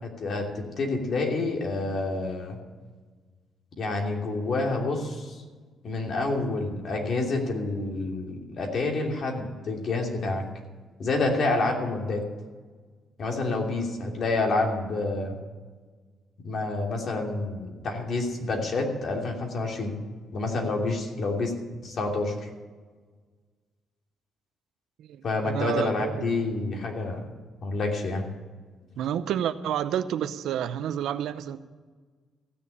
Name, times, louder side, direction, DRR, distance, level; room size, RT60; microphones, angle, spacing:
voice 1, 0.0-2.6 3.8-5.4 5.8-10.4 11.0-12.2 13.2-15.3 16.4-19.9 20.3-21.5 21.8-22.5 25.2-27.3 27.6-28.2, left 3 dB, 55° left, 1 dB, 2.9 m, -28 dB
voice 2, 25.0-26.3 29.0-31.6, right 9 dB, 80° right, 12 dB, 0.7 m, -29 dB
15.5 x 7.0 x 8.6 m, 1.4 s
cardioid pair, 90°, 0 cm